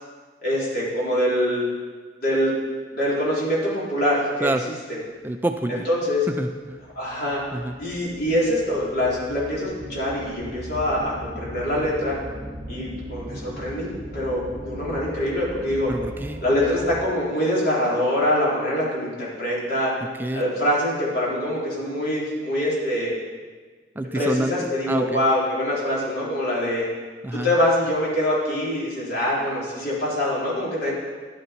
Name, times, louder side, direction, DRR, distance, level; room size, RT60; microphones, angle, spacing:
voice 1, 0.4-1.6 2.2-2.5 2.9-5.0 5.7-6.2 7.0-7.4 7.8-12.2 12.7-15.9 16.4-19.9 20.3-23.1 24.1-26.9 27.3-30.9, left 1 dB, 60° left, -6 dB, 3.8 m, -24 dB
voice 2, 5.2-5.8 6.4-6.8 7.5-7.7 15.9-16.4 20.2-20.4 24.0-24.5 24.9-25.2 27.2-27.5, right 1 dB, 10° right, 7 dB, 0.4 m, -27 dB
sound 1, 6.7-17.3, right 1 dB, 35° right, 1.0 m, -38 dB
11.0 x 9.9 x 4.5 m, 1.4 s
head